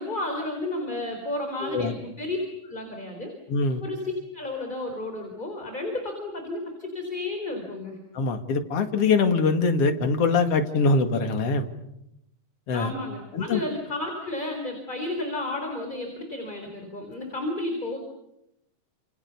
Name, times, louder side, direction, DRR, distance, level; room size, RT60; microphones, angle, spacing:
voice 1, 0.0-2.4 2.6-3.4 3.8-8.0 12.7-18.0, left 2 dB, 15° left, 3 dB, 3.9 m, -32 dB
voice 2, 1.6-1.9 3.5-3.8 8.1-11.7 12.7-12.9 13.3-13.6, left 4 dB, 55° left, 6 dB, 3.0 m, -23 dB
30.0 x 27.5 x 7.0 m, 0.83 s
omnidirectional pair, 3.4 m